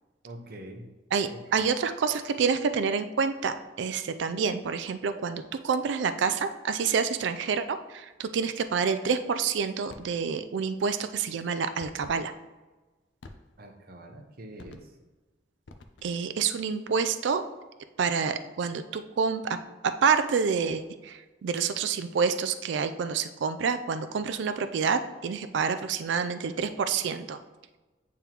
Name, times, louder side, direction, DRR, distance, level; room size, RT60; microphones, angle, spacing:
voice 1, 0.2-0.9 1.3-1.7 13.6-15.0, right 1 dB, 50° right, 4 dB, 0.7 m, -45 dB
voice 2, 1.1-12.3 16.0-17.4 18.0-19.6 20.0-27.4, right 6 dB, 70° right, 10 dB, 0.3 m, -28 dB
sound 1, 9.9-10.2 11.8-12.2 13.2-13.7 14.6-15.1 15.6-16.3, left 2 dB, 70° left, 0.5 m, -49 dB
8.9 x 3.6 x 2.9 m, 1.2 s
head